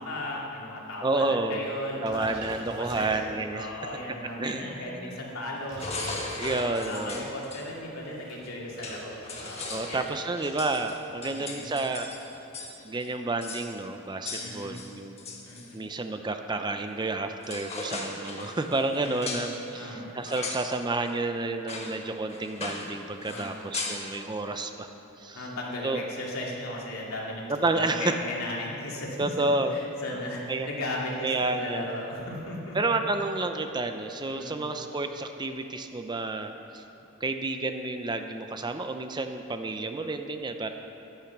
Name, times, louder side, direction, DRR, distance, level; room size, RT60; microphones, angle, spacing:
voice 1, 0.0-2.3 2.8-3.1 3.5-5.9 6.4-10.1 11.2-11.6 14.3-14.7 15.4-15.8 19.0-19.4 19.7-20.1 23.2-23.6 25.3-29.3 29.7-32.8 34.3-34.6, left 1 dB, 70° left, -3 dB, 2.8 m, -36 dB
voice 2, 1.0-1.6 2.0-3.7 4.4-4.7 5.0-5.2 6.4-7.3 9.7-12.1 12.8-15.2 15.7-24.9 25.2-25.4 25.8-26.0 27.5-28.1 29.2-29.8 30.5-30.7 31.2-31.9 32.7-36.8 37.2-40.7, right 2 dB, 20° right, 6 dB, 0.5 m, -30 dB
sound 1, 2.0-3.7 4.3-4.5 5.3-7.1 7.9-10.2 10.5-10.8 11.1-11.2 11.4-12.5, right 1 dB, 55° right, 4.2 m, -44 dB
sound 2, 5.8-7.6 8.4-8.5 8.8-12.8 13.0-13.1 13.4-13.7 14.2-15.7 17.0-17.1 17.4-19.5 20.2-20.7 21.1-21.2 21.7-22.0 22.3-22.9 23.2-24.1, left 3 dB, 30° left, 1.7 m, -38 dB
15.0 x 11.5 x 6.0 m, 2.9 s
head